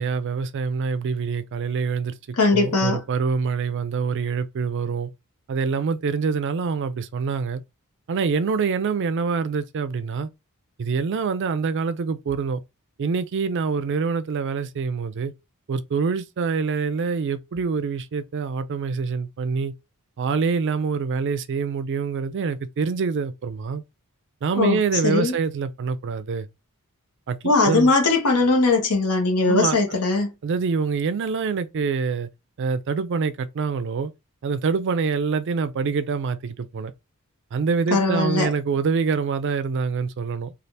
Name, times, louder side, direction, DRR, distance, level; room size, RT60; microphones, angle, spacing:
voice 1, 0.0-5.1 5.5-7.6 8.1-10.3 10.8-12.6 13.0-15.3 15.7-19.7 20.2-23.8 24.4-26.5 27.3-27.9 29.4-29.8 30.4-32.3 32.6-34.1 34.4-36.9 37.5-40.5, right 5 dB, 55° right, 0.4 m, -25 dB
voice 2, 2.4-3.0 24.6-25.3 27.4-30.3 37.9-38.5, left 3 dB, 85° left, 1.1 m, -20 dB
3.2 x 2.4 x 2.6 m
head